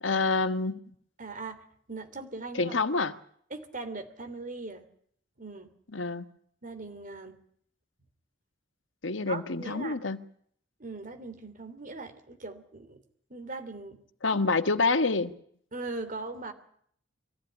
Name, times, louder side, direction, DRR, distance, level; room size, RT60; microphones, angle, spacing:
voice 1, 0.0-0.8 2.5-3.1 5.9-6.2 9.0-10.2 14.2-15.3, left 3 dB, 90° left, 1.4 m, -27 dB
voice 2, 1.2-2.8 3.5-4.9 5.4-5.7 6.6-7.4 9.2-10.0 10.8-13.0 13.3-14.0 15.7-16.5, right 3 dB, 45° right, 3.1 m, -40 dB
24.0 x 15.0 x 10.0 m
head